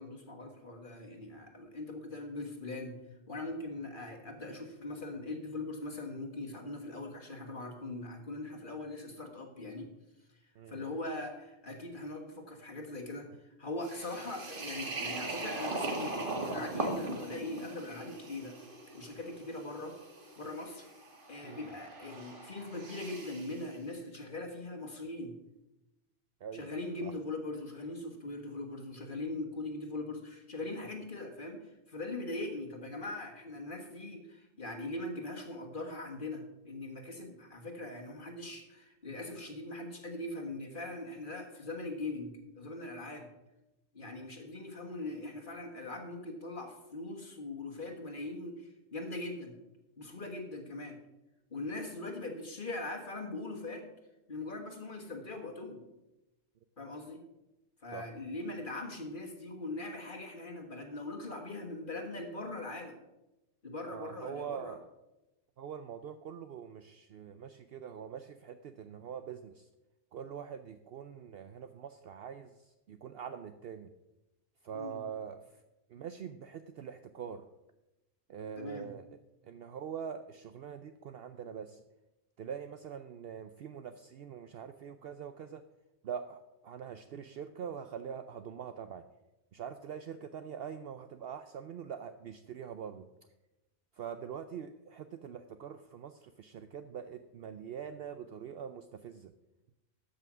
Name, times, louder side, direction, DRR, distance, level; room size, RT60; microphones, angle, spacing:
voice 1, 0.0-3.0 3.3-9.9 10.4-18.6 18.9-20.0 20.4-20.9 21.3-25.4 26.5-43.3 43.9-49.6 50.0-51.0 51.5-53.9 54.3-55.8 56.8-57.2 57.8-63.0 63.6-64.8 74.7-75.0 78.6-78.9, left 2 dB, 45° left, 2 dB, 1.6 m, -41 dB
sound 1, 13.8-23.6, right 2 dB, 50° right, 1.7 m, -40 dB
voice 2, 63.9-64.9 65.6-69.7 70.1-73.9 74.6-75.6 75.9-77.4 78.3-79.0 79.4-81.8 82.4-85.6 86.0-89.0 89.5-93.1 93.9-99.3, right 7 dB, 65° right, 9 dB, 0.8 m, -44 dB
13.5 x 5.7 x 6.1 m, 0.96 s
omnidirectional pair, 1.2 m